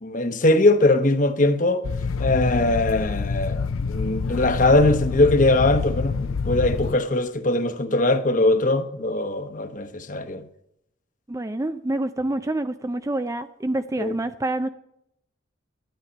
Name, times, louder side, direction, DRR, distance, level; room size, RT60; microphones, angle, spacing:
voice 1, 0.0-1.8 2.2-10.4 14.0-14.1, left 2 dB, 40° left, 1.0 m, -21 dB
sound 1, 1.8-7.0, left 4 dB, 90° left, 0.6 m, -27 dB
voice 2, 11.3-14.7, right 2 dB, 15° right, 0.4 m, -27 dB
13.0 x 10.0 x 5.3 m
head